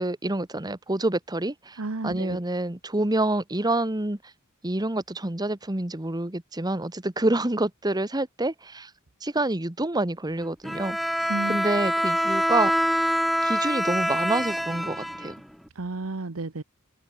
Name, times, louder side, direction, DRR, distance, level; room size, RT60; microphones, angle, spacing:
voice 1, 0.0-4.2 4.6-8.9 9.2-11.0 11.5-12.9 13.4-15.3, right 2 dB, 20° right, 1.4 m, -27 dB
voice 2, 1.8-2.4 11.3-11.6 15.7-16.6, right 3 dB, 90° right, 1.1 m, -32 dB
Bowed string instrument, 10.6-15.7, equal, ahead, 0.5 m, -25 dB
open air
head